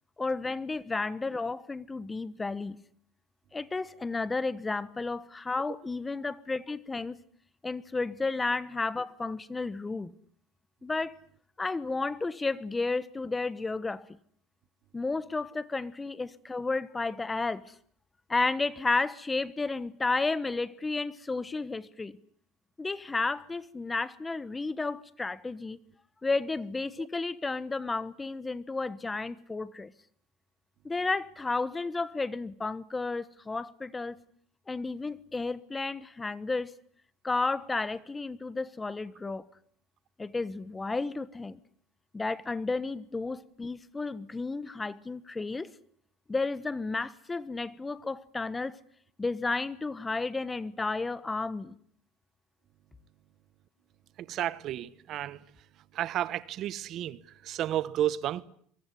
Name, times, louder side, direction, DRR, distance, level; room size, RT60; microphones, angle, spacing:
voice 1, 0.2-2.8 3.5-7.2 7.6-10.1 10.8-11.1 11.6-14.2 14.9-17.7 18.3-22.1 22.8-25.8 26.2-29.9 30.8-34.2 34.7-36.7 37.2-39.4 40.2-41.6 42.1-45.7 46.3-48.8 49.2-51.7, left 3 dB, 15° left, 1.2 m, -32 dB
voice 2, 54.2-55.4 55.9-58.4, right 12 dB, 50° right, 1.3 m, -32 dB
23.5 x 23.0 x 9.7 m
supercardioid pair, 125°, 0 cm